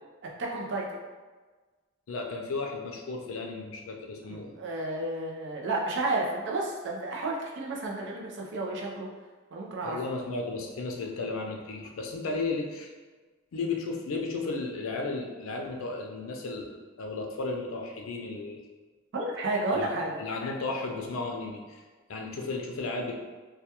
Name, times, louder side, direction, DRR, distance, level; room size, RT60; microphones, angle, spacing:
voice 1, 0.4-0.9 4.2-9.1 9.5-10.0 19.1-20.2, right 2 dB, 60° right, -1 dB, 0.5 m, -31 dB
voice 2, 2.1-4.5 9.8-12.9 13.5-18.6 19.7-19.9 20.2-21.8 22.1-23.2, left 3 dB, 90° left, 1 dB, 0.4 m, -34 dB
2.2 x 2.2 x 2.8 m, 1.3 s
head